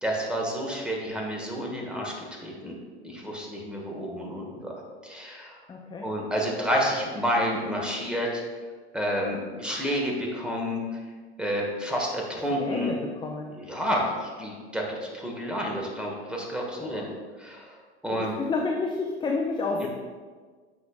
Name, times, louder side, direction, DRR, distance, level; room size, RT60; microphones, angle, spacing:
voice 1, 0.0-2.1 2.4-2.7 3.0-4.7 5.0-5.6 6.0-8.4 8.9-10.8 11.4-12.9 13.5-17.1 17.4-17.8 18.0-18.4 19.8-19.9, equal, 5° right, -1 dB, 1.4 m, -29 dB
voice 2, 5.7-6.1 12.5-13.6 16.8-17.1 18.1-19.9, left 3 dB, 15° left, 1 dB, 0.5 m, -30 dB
7.9 x 5.3 x 2.5 m, 1.5 s
hypercardioid pair, 90°, 33 cm